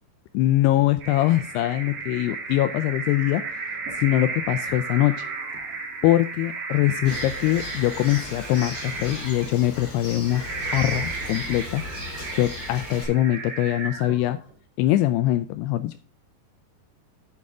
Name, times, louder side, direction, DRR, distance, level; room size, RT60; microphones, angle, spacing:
voice 1, 0.3-3.4 4.0-5.3 6.0-11.8 12.3-14.4 14.8-16.0, left 14 dB, 85° left, 11 dB, 2.4 m, -23 dB
sound 1, 1.0-14.5, right 4 dB, 45° right, 2.1 m, -34 dB
Bird, 7.0-13.0, left 2 dB, 25° left, 2.8 m, -37 dB
9.5 x 7.8 x 3.6 m, 0.37 s
omnidirectional pair, 5.2 m